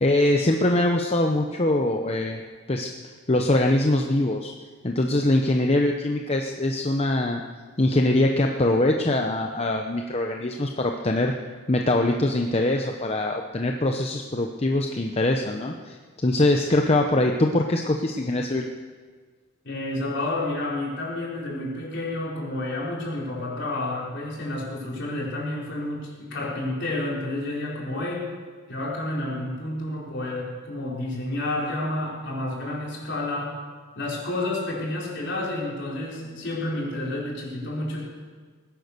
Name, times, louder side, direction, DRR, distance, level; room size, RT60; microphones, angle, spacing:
voice 1, 0.0-2.4 2.7-2.9 3.3-4.5 4.8-7.4 7.8-11.3 11.7-18.7, left 1 dB, 30° left, 2 dB, 0.8 m, -23 dB
voice 2, 19.6-28.3 28.7-33.6 33.9-38.1, left 2 dB, 55° left, -4 dB, 4.5 m, -30 dB
19.5 x 10.5 x 6.7 m, 1.5 s
head